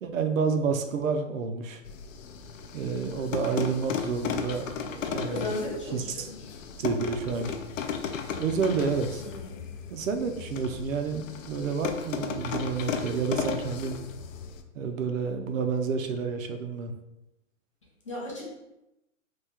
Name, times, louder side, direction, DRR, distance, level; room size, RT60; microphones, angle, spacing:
voice 1, 0.0-1.8 2.7-5.5 5.9-6.3 6.8-7.6 8.4-9.2 9.9-14.0 14.7-16.9, right 5 dB, 80° right, 6 dB, 0.6 m, -29 dB
sound 1, 1.8-14.6, left 6 dB, 75° left, 0.5 m, -35 dB
voice 2, 5.2-6.4 9.2-9.6 18.1-18.5, left 1 dB, 25° left, -4 dB, 0.5 m, -35 dB
3.0 x 2.2 x 3.4 m, 0.92 s
hypercardioid pair, 165°, 39 cm